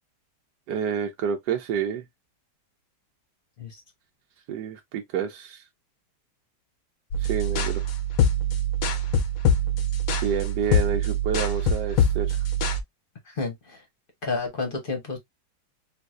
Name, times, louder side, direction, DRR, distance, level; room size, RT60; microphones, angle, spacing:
voice 1, 0.7-2.0 4.5-5.6 7.2-7.8 10.2-12.4, right 7 dB, 75° right, 1.2 m, -29 dB
sound 1, 7.1-12.8, equal, 65° left, 0.9 m, -24 dB
voice 2, 13.3-13.8 14.2-15.2, left 3 dB, 40° left, 0.8 m, -30 dB
3.8 x 2.5 x 2.3 m
omnidirectional pair, 1.8 m